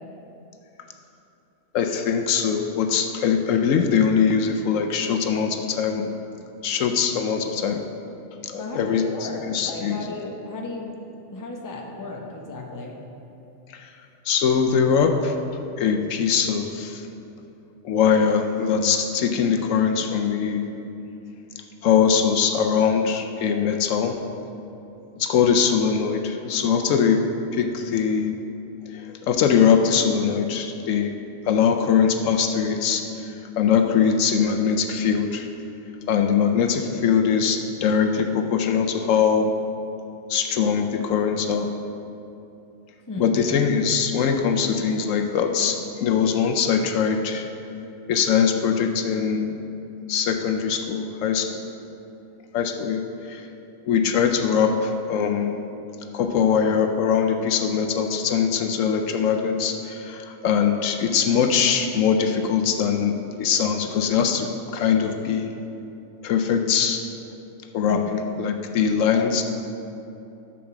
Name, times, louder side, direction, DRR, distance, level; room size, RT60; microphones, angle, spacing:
voice 1, 1.7-6.1 6.6-7.8 8.4-10.0 13.7-13.9 14.3-15.3 15.8-17.1 17.8-20.7 21.8-24.2 25.2-27.2 27.5-28.4 28.9-31.2 31.5-35.5 36.1-39.5 40.3-41.7 43.2-47.4 48.1-49.5 50.1-51.5 52.5-53.5 53.9-55.6 56.1-65.5 66.2-67.0 67.7-69.4, left 7 dB, 75° left, 5 dB, 1.0 m, -22 dB
voice 2, 8.6-11.0 11.3-13.0 43.1-43.4 67.9-68.0, left 2 dB, 20° left, 0 dB, 0.7 m, -34 dB
7.0 x 6.3 x 6.0 m, 2.8 s
omnidirectional pair, 1.4 m